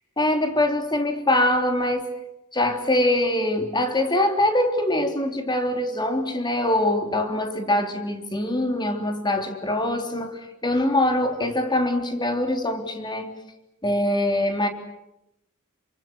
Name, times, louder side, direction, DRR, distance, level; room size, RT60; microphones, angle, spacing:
voice 1, 0.2-2.1 2.5-13.3 13.8-14.7, left 1 dB, 20° left, 6 dB, 3.4 m, -23 dB
29.0 x 25.0 x 8.0 m, 0.87 s
head